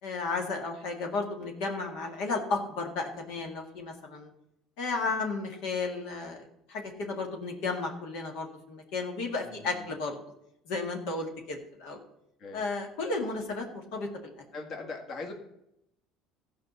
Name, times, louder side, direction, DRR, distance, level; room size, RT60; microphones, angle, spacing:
voice 1, 0.0-4.3 4.8-10.2 10.7-12.0 12.5-14.3, left 3 dB, 80° left, 1 dB, 1.9 m, -33 dB
voice 2, 9.4-10.0 12.4-12.7 14.5-15.3, left 3 dB, 50° left, 2 dB, 1.9 m, -41 dB
14.0 x 5.1 x 6.9 m, 0.82 s
cardioid pair, 125°, 0 cm